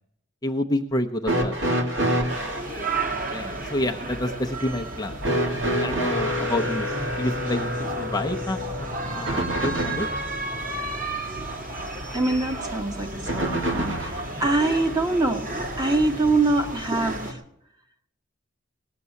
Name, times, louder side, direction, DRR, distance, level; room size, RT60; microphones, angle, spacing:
voice 1, 0.4-1.5 3.3-5.1 5.8-6.9 7.2-7.7 8.0-10.1, left 1 dB, 20° left, 3 dB, 0.7 m, -28 dB
sound 1, 1.2-2.7 5.2-10.3 13.3-14.3 15.5-15.6 16.7-16.8, equal, 65° right, 2.6 m, -27 dB
sound 2, 2.3-17.3, right 2 dB, 40° right, 1.9 m, -33 dB
voice 2, 12.1-15.5 15.8-17.4, right 2 dB, 20° right, 4 dB, 1.2 m, -24 dB
19.0 x 6.9 x 8.3 m, 0.77 s
head